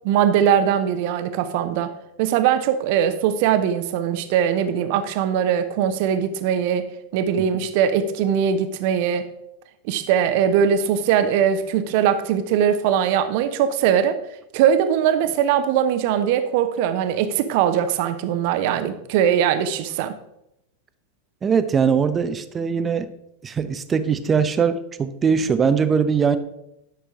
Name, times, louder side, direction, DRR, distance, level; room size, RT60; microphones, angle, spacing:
voice 1, 0.0-9.3 9.9-14.2 14.5-20.2, right 9 dB, 45° right, 10 dB, 0.8 m, -21 dB
voice 2, 21.4-23.1 23.4-26.4, right 6 dB, 20° right, 12 dB, 0.6 m, -21 dB
11.0 x 6.2 x 3.7 m, 0.83 s
figure-of-eight pair, 90°, 0 cm